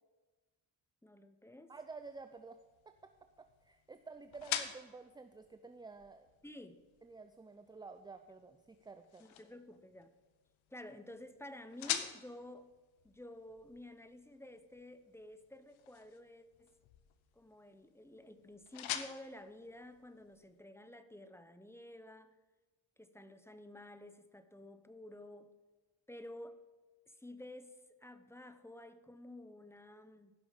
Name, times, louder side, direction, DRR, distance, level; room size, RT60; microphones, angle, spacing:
voice 1, 1.0-1.7 6.4-6.8 9.2-10.1 10.7-12.7 13.0-16.7 17.3-22.3 23.0-25.5 26.1-26.6 27.1-30.3, left 1 dB, 5° left, 10 dB, 0.8 m, -52 dB
voice 2, 1.7-2.6 2.9-6.3 7.0-9.2, right 4 dB, 10° right, 8 dB, 0.4 m, -51 dB
sound 1, 1.8-20.6, left 10 dB, 90° left, 1.0 m, -47 dB
15.5 x 6.0 x 5.1 m, 1.2 s
cardioid pair, 85°, 46 cm